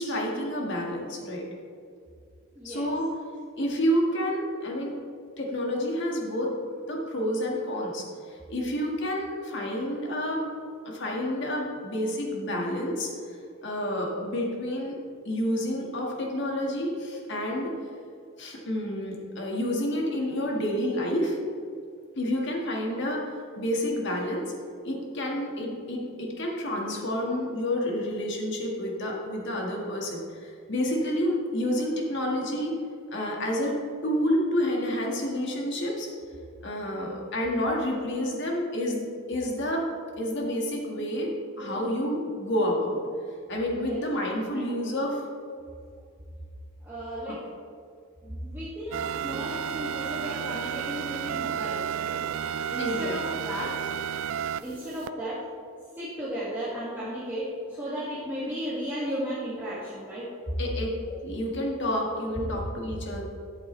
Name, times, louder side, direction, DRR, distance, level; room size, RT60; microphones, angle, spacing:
voice 1, 0.0-1.4 2.6-3.1 3.6-4.9 5.4-6.5 6.9-10.5 10.8-13.1 13.6-14.9 15.2-17.7 18.4-21.4 22.1-23.3 23.6-24.5 24.8-32.7 33.1-36.1 36.6-39.9 40.2-41.3 41.6-43.0 43.5-45.2 47.3-47.4 52.8-53.2 60.6-63.2, equal, 55° left, -1 dB, 1.7 m, -29 dB
voice 2, 2.6-2.9 41.6-41.9 43.8-44.0 44.5-45.0 46.8-47.4 48.2-52.1 52.7-53.7 54.6-55.4 55.9-60.3, equal, 10° right, -11 dB, 1.9 m, -35 dB
sound 1, 48.9-55.1, right 8 dB, 65° right, 0.3 m, -32 dB
12.5 x 8.5 x 3.2 m, 2.3 s
head